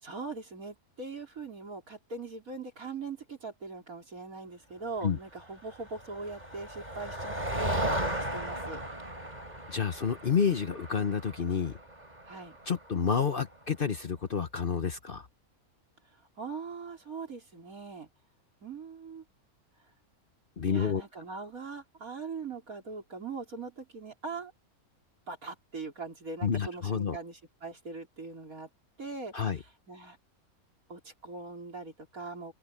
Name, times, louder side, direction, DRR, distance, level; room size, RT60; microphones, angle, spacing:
voice 1, 0.0-8.8 12.3-12.6 16.4-18.1 18.6-19.2 20.7-24.5 25.3-28.7 29.0-30.2 30.9-32.5, right 4 dB, 70° right, 4.3 m, -41 dB
Motor vehicle (road), 5.7-13.5, right 1 dB, 30° right, 5.5 m, -36 dB
voice 2, 9.7-11.8 12.7-15.3 20.6-21.0 26.4-27.2 29.3-29.6, left 6 dB, 45° left, 1.0 m, -29 dB
open air
omnidirectional pair, 1.5 m